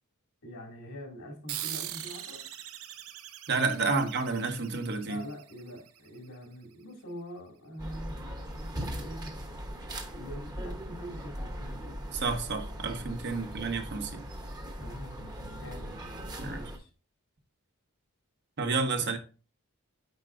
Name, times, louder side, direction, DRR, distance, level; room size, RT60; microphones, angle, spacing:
voice 1, 0.4-2.4 3.9-4.0 5.0-8.2 8.5-9.4 10.1-12.0 13.3-13.5 14.8-16.2 16.4-16.9, equal, 85° left, 2.4 m, -44 dB
sound 1, 1.5-6.4, right 11 dB, 80° right, 0.6 m, -42 dB
voice 2, 3.5-5.2 12.1-14.2 16.4-16.6 18.6-19.2, right 4 dB, 55° right, 1.0 m, -30 dB
sound 2, 7.8-16.8, equal, 20° right, 1.0 m, -39 dB
8.2 x 4.7 x 2.5 m
head